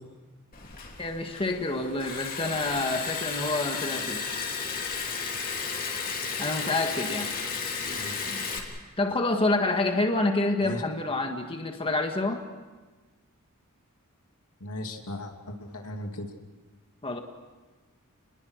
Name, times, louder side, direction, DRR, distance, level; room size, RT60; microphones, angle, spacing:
Liquid, 0.5-8.6, left 5 dB, 40° left, 3.2 m, -33 dB
voice 1, 1.0-4.2 6.4-7.3 9.0-12.4 17.0-17.2, left 2 dB, 25° left, 4 dB, 1.7 m, -27 dB
voice 2, 14.6-16.3, left 1 dB, 85° left, 3 dB, 2.7 m, -37 dB
29.0 x 21.0 x 6.5 m, 1.2 s
head